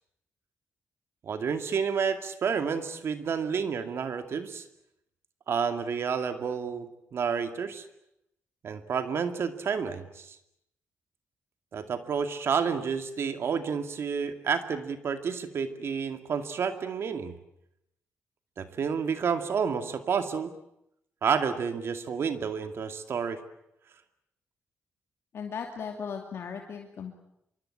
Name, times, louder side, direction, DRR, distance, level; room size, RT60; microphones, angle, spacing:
voice 1, 1.2-4.6 5.5-7.8 8.6-10.4 11.7-17.4 18.6-20.5 21.2-23.4, right 6 dB, 65° right, 8 dB, 2.3 m, -30 dB
voice 2, 25.3-27.1, left 6 dB, 65° left, 3 dB, 2.6 m, -37 dB
25.0 x 24.0 x 8.7 m, 0.79 s
cardioid pair, 100°, 5 cm